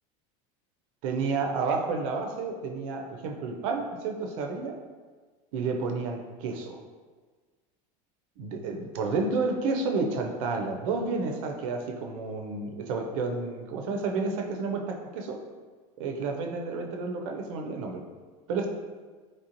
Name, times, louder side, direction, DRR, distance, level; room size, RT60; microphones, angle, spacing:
voice 1, 1.0-4.8 5.5-6.8 8.4-15.4 16.0-18.0 18.5-18.7, right 4 dB, 75° right, 3 dB, 0.4 m, -30 dB
3.2 x 2.5 x 2.8 m, 1.4 s
supercardioid pair, 155°, 17 cm